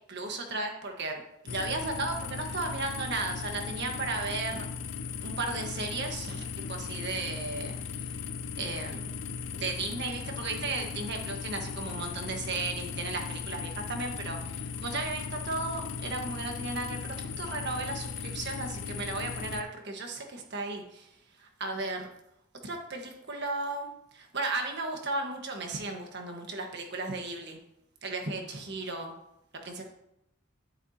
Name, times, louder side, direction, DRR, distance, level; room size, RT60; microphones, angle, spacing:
voice 1, 0.1-4.7 5.2-8.1 8.6-9.2 9.5-22.1 22.6-27.6 28.0-29.1 29.6-29.8, right 3 dB, 55° right, 3 dB, 1.5 m, -35 dB
sound 1, 1.5-19.6, left 6 dB, 60° left, 0.5 m, -37 dB
10.5 x 8.9 x 2.9 m, 0.80 s
head